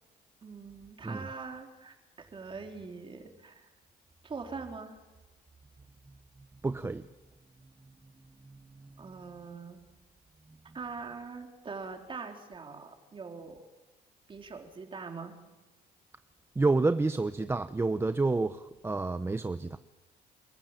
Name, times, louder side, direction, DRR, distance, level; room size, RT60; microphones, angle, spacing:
voice 1, 0.4-3.7 4.2-5.0 9.0-9.8 10.7-13.7 14.3-15.3, right 4 dB, 30° right, 4 dB, 3.9 m, -43 dB
voice 2, 6.6-7.0 16.6-19.8, right 3 dB, 15° right, 11 dB, 0.8 m, -29 dB
29.0 x 15.5 x 9.0 m, 1.1 s
cardioid pair, 110°, 17 cm